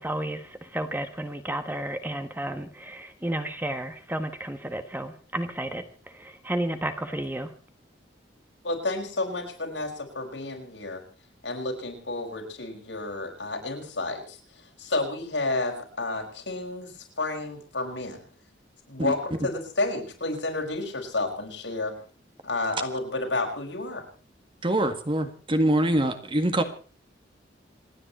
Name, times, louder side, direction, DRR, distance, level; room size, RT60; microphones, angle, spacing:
voice 1, 0.0-7.5, right 1 dB, 10° right, 9 dB, 1.3 m, -32 dB
voice 2, 8.6-11.0 11.4-18.3 18.9-21.9 22.4-24.0, left 2 dB, 75° left, 1 dB, 5.4 m, -31 dB
voice 3, 24.6-26.6, right 1 dB, 30° right, 9 dB, 1.8 m, -24 dB
27.5 x 9.9 x 4.3 m, 0.40 s
head